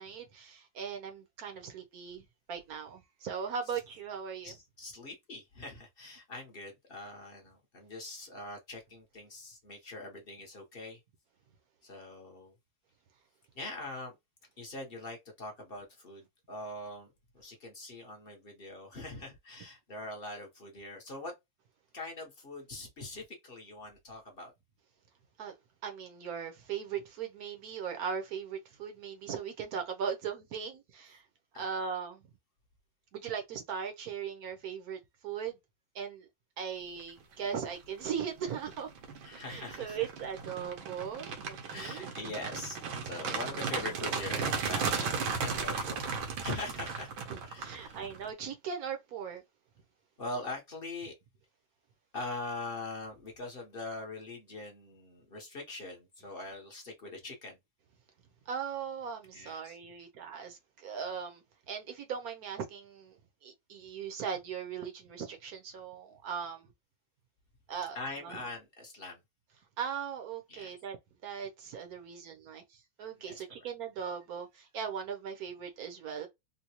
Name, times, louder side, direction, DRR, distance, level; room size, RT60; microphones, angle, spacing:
voice 1, 0.0-4.5 25.4-25.5 25.8-31.2 31.5-32.2 33.1-35.6 35.9-36.3 36.6-38.9 39.5-42.1 47.3-49.4 58.5-63.2 63.4-66.7 67.7-68.3 69.8-71.0 71.2-76.3, right 7 dB, 60° right, 1.0 m, -39 dB
voice 2, 4.4-11.0 11.8-12.5 13.5-14.2 14.6-21.3 21.9-24.5 31.5-31.6 39.2-40.1 41.7-46.1 46.4-47.1 47.4-48.0 50.2-51.1 52.1-57.6 59.3-59.8 67.9-69.2 70.5-70.7 73.2-73.4, left 2 dB, 40° left, 0.8 m, -42 dB
sound 1, 37.5-37.8 38.2-48.3, right 5 dB, 85° right, 1.6 m, -36 dB
3.9 x 2.2 x 2.8 m
omnidirectional pair, 2.2 m